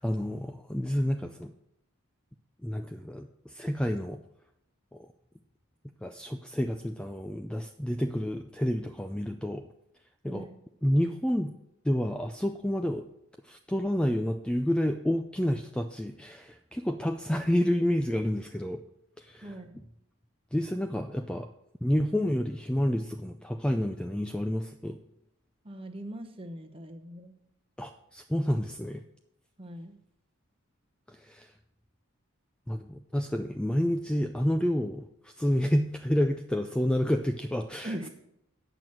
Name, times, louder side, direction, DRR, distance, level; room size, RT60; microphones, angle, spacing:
voice 1, 0.0-1.5 2.6-4.2 4.9-5.1 6.0-9.7 10.2-10.5 10.8-11.5 11.8-13.1 13.4-18.8 19.2-19.6 20.5-21.5 21.8-25.0 27.8-29.0 31.1-31.5 32.7-38.1, equal, 5° left, 6 dB, 0.3 m, -29 dB
voice 2, 10.2-10.6 19.4-19.8 25.6-27.3 29.6-30.0 37.8-38.1, right 1 dB, 25° right, 5 dB, 0.9 m, -41 dB
9.0 x 5.9 x 7.7 m, 0.80 s
head